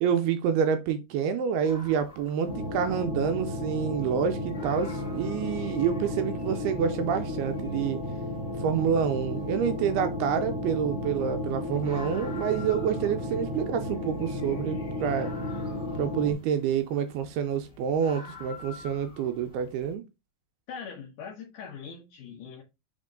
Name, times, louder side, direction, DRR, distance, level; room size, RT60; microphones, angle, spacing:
voice 1, 0.0-8.1 8.6-15.4 15.9-20.0, right 8 dB, 80° right, 2.3 m, -28 dB
sound 1, 1.6-19.9, left 4 dB, 20° left, 1.9 m, -50 dB
sound 2, 2.4-16.3, left 1 dB, 35° left, 1.0 m, -33 dB
voice 2, 20.7-22.6, left 6 dB, 75° left, 1.9 m, -41 dB
7.5 x 3.6 x 3.8 m
omnidirectional pair, 5.1 m